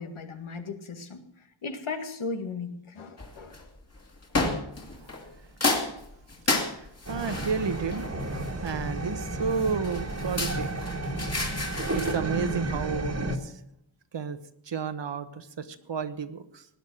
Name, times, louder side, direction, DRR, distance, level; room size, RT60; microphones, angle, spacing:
voice 1, 0.0-3.6, left 4 dB, 80° left, 6 dB, 2.0 m, -37 dB
sound 1, 3.2-3.6 4.3-5.3 5.6-8.9 9.6-12.2, left 3 dB, 30° left, 2.6 m, -31 dB
voice 2, 6.4-8.0 8.6-10.7 11.9-13.6 14.1-14.4 14.6-16.7, right 5 dB, 60° right, 11 dB, 1.2 m, -32 dB
sound 2, 7.1-13.4, right 2 dB, 30° right, 1.7 m, -32 dB
18.5 x 10.5 x 6.3 m, 0.77 s
wide cardioid pair, 145°, 48 cm